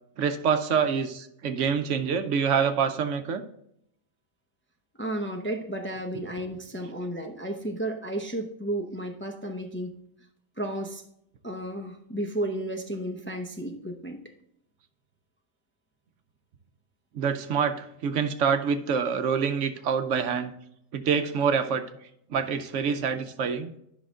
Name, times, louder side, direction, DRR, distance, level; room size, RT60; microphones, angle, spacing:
voice 1, 0.2-3.4 6.1-6.2 17.1-20.5 20.9-21.8 22.3-23.7, right 6 dB, 70° right, 9 dB, 1.0 m, -26 dB
voice 2, 5.0-9.9 10.6-11.0 11.4-14.2, right 1 dB, 10° left, 3 dB, 0.7 m, -33 dB
10.5 x 5.9 x 3.6 m, 0.73 s
omnidirectional pair, 1.4 m